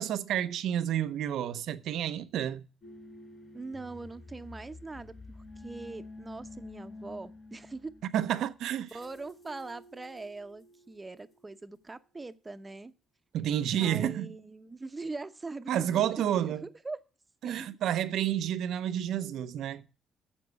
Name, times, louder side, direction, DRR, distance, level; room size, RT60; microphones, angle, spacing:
voice 1, 0.0-2.7 8.1-8.9 13.3-14.3 15.7-16.6 17.4-19.8, right 10 dB, 80° right, 0.7 m, -30 dB
sound 1, 2.8-11.9, left 2 dB, 45° left, 4.4 m, -50 dB
voice 2, 3.5-5.2 5.6-8.0 8.9-12.9 13.8-16.1 16.4-17.0 17.4-17.8, right 3 dB, 20° right, 0.8 m, -42 dB
7.1 x 7.1 x 8.1 m
cardioid pair, 90°, 0 cm